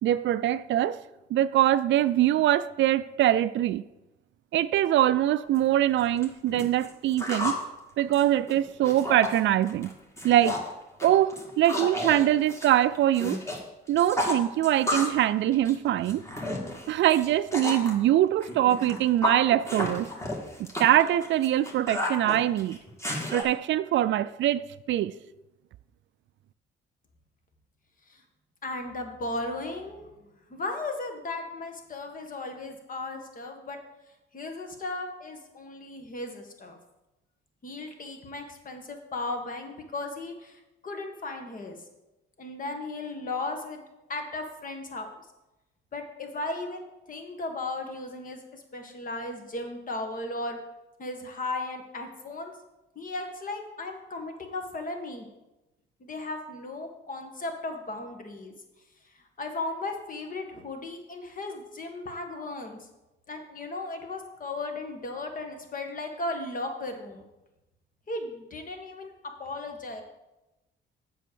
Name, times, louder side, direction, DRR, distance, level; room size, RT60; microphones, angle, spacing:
voice 1, 0.0-1.0 1.3-3.8 4.5-7.6 8.0-9.9 10.2-10.6 11.0-13.4 13.9-16.2 16.9-20.1 20.8-22.8 23.3-25.1, right 12 dB, 70° right, 0.4 m, -23 dB
sound 1, 5.5-5.6 6.0-7.6 8.0-9.4 9.7-9.9 10.2-10.7 11.0-13.6 13.9-15.2 15.5-17.9 18.4-23.4, left 1 dB, 15° left, 1.9 m, -32 dB
voice 2, 28.6-30.1 30.5-33.8 34.3-36.8 37.6-41.8 42.4-43.8 44.1-45.1 45.9-50.6 51.0-52.5 52.9-55.3 56.0-58.5 59.1-62.9 63.3-67.2 68.1-70.0, left 2 dB, 45° left, 1.7 m, -36 dB
7.5 x 5.5 x 6.9 m
cardioid pair, 90°, 20 cm